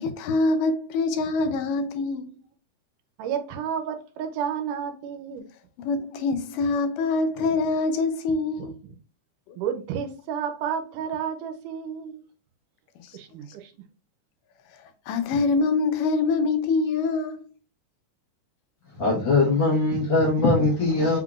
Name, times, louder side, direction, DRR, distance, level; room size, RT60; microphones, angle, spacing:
voice 1, 0.0-2.3 5.8-8.7 9.5-9.6 13.0-13.2 14.8-17.4, left 3 dB, 90° left, 2.2 m, -25 dB
voice 2, 3.2-5.4 7.4-7.7 8.6-9.0 9.6-12.2 13.1-13.7, right 8 dB, 80° right, 2.2 m, -31 dB
voice 3, 19.0-21.2, left 3 dB, 55° left, 1.5 m, -21 dB
5.4 x 3.6 x 2.4 m
omnidirectional pair, 3.7 m